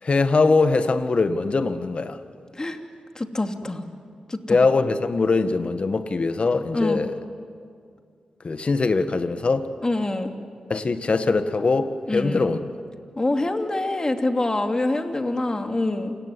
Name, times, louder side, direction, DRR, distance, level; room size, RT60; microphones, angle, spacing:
voice 1, 0.0-2.2 4.5-7.2 8.4-9.7 10.7-12.6, left 3 dB, 50° left, 10 dB, 1.6 m, -22 dB
voice 2, 3.1-3.8 4.3-4.6 6.7-7.0 9.8-10.3 12.1-12.5 13.2-16.2, left 2 dB, 30° left, 5 dB, 2.8 m, -25 dB
28.0 x 19.0 x 9.9 m, 2.2 s
supercardioid pair, 45°, 3 cm